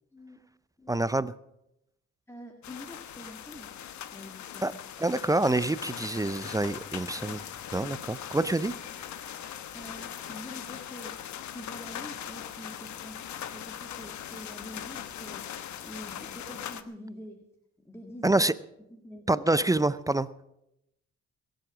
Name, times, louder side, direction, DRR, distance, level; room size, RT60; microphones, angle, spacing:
voice 1, 0.9-1.3 4.6-4.7 5.0-7.4 7.7-8.7 18.2-18.5 19.3-20.5, right 2 dB, 10° right, 0.5 m, -26 dB
voice 2, 2.3-3.8 4.1-4.8 9.7-11.2 11.5-13.2 13.5-17.4 17.9-18.4 18.9-19.5, equal, 10° left, 1.7 m, -46 dB
sound 1, 2.6-16.8, left 10 dB, 70° left, 1.1 m, -40 dB
22.0 x 7.8 x 6.2 m
cardioid pair, 90°, 30 cm